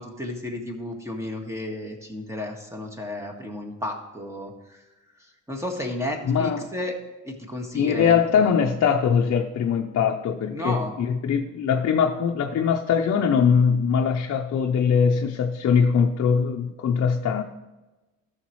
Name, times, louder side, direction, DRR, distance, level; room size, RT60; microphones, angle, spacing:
voice 1, 0.0-4.8 5.1-7.0 7.2-8.4 10.5-10.9, left 1 dB, 10° right, 2 dB, 1.8 m, -33 dB
voice 2, 6.2-6.6 7.7-17.4, left 6 dB, 60° left, 2 dB, 0.7 m, -22 dB
13.5 x 6.5 x 3.1 m, 1.1 s
cardioid pair, 90°, 30 cm